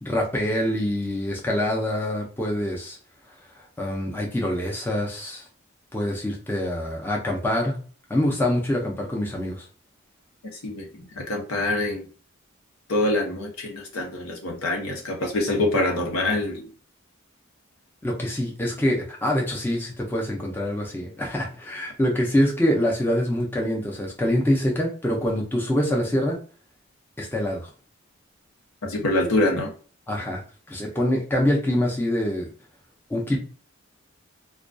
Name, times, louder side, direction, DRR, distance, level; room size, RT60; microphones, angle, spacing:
voice 1, 0.0-3.0 3.8-5.5 5.9-7.8 8.1-9.6 18.0-26.4 27.2-27.7 30.1-30.4 30.7-32.5 33.1-33.4, left 1 dB, 10° left, -2 dB, 0.4 m, -25 dB
voice 2, 10.6-12.1 12.9-16.7 28.8-29.7, left 2 dB, 85° left, 1 dB, 0.7 m, -25 dB
2.2 x 2.2 x 2.5 m, 0.39 s
head